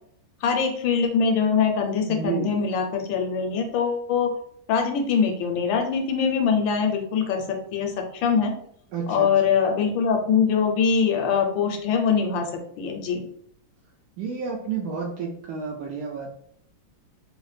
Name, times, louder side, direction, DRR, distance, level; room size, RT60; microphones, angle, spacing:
voice 1, 0.4-4.3 4.7-8.5 9.1-13.2, left 6 dB, 75° left, 3 dB, 1.2 m, -23 dB
voice 2, 2.1-2.5 8.9-9.3 14.2-16.3, right 5 dB, 80° right, -1 dB, 0.9 m, -30 dB
3.6 x 2.1 x 3.2 m, 0.67 s
omnidirectional pair, 2.3 m